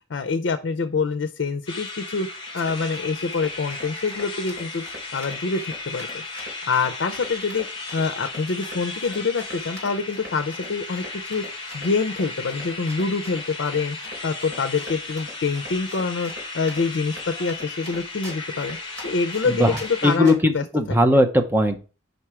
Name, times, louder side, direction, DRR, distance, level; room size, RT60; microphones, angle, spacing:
voice 1, 0.1-2.3 2.5-4.8 5.1-6.2 6.7-11.4 11.7-14.0 14.2-18.8 19.0-21.0, left 4 dB, 75° left, 8 dB, 0.5 m, -26 dB
sound 1, 1.7-20.2, left 3 dB, 25° left, 1.2 m, -35 dB
Run, 2.3-19.9 20.2-20.6, equal, 80° right, 3.7 m, -42 dB
voice 2, 19.5-19.8 20.0-21.8, left 1 dB, 10° right, 6 dB, 0.7 m, -19 dB
5.2 x 4.4 x 4.8 m, 0.34 s
head